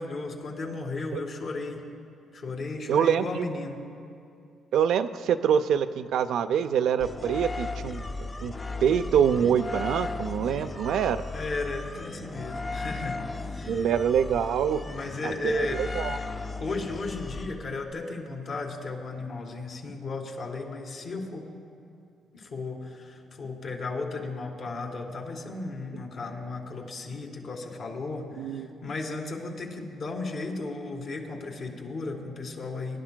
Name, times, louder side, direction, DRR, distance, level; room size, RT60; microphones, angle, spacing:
voice 1, 0.0-1.9 2.3-3.8 11.3-13.9 14.8-15.8 16.6-21.5 22.3-33.0, left 3 dB, 60° left, 1 dB, 2.0 m, -35 dB
voice 2, 2.9-3.4 4.7-8.5 8.8-11.2 13.7-14.8 15.2-16.2 28.4-28.7, right 8 dB, 75° right, 10 dB, 0.4 m, -25 dB
sound 1, 7.0-17.9, left 3 dB, 25° left, 0.4 m, -36 dB
23.0 x 11.5 x 2.2 m, 2.6 s
cardioid pair, 90°, 0 cm